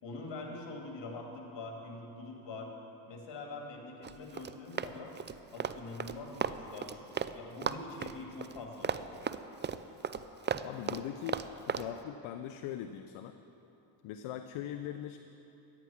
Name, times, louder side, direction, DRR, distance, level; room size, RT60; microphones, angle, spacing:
voice 1, 0.0-2.7 3.1-5.1 5.5-9.1, left 3 dB, 55° left, 0 dB, 2.8 m, -44 dB
Run, 4.0-7.3 7.6-11.9, right 7 dB, 25° right, 0.4 m, -35 dB
voice 2, 10.6-13.4 14.0-15.2, left 10 dB, 70° left, 8 dB, 0.7 m, -41 dB
14.0 x 9.9 x 5.9 m, 2.9 s
supercardioid pair, 70°, 50 cm